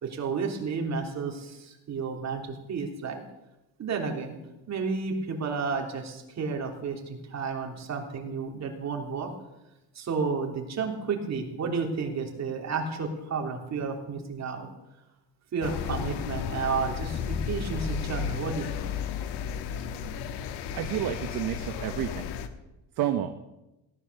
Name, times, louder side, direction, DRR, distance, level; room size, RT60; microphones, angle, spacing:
voice 1, 0.0-3.2 3.8-4.4 4.7-9.3 9.9-14.7 15.5-18.8, right 5 dB, 45° right, 2 dB, 3.3 m, -32 dB
sound 1, 15.6-22.5, left 7 dB, 90° left, 1.4 m, -33 dB
voice 2, 20.7-22.3 23.0-23.5, right 11 dB, 60° right, 7 dB, 1.2 m, -30 dB
17.0 x 11.0 x 6.9 m, 0.96 s
cardioid pair, 120°, 39 cm